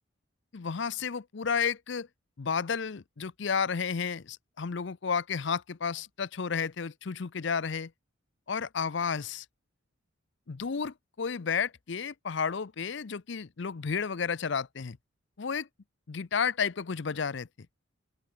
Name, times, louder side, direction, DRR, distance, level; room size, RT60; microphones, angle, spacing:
voice 1, 0.5-2.1 2.4-7.9 8.5-9.5 10.5-15.0 15.4-15.7 16.1-17.5, left 6 dB, 60° left, 0.6 m, -32 dB
open air
head